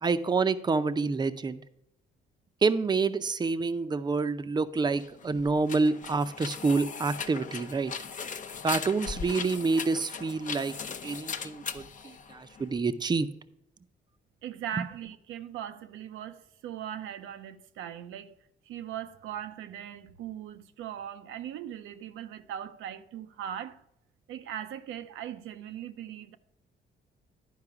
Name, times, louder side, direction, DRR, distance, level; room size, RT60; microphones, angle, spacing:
voice 1, 0.0-1.6 2.6-7.9 8.6-10.7 11.0-13.3 14.8-14.9, right 4 dB, 20° right, 0.6 m, -28 dB
sound 1, 4.9-12.8, left 6 dB, 40° left, 0.6 m, -39 dB
voice 2, 14.4-18.3 18.7-23.8 24.3-26.4, right 10 dB, 85° right, 0.6 m, -39 dB
11.0 x 4.8 x 4.8 m
cardioid pair, 90°, 20 cm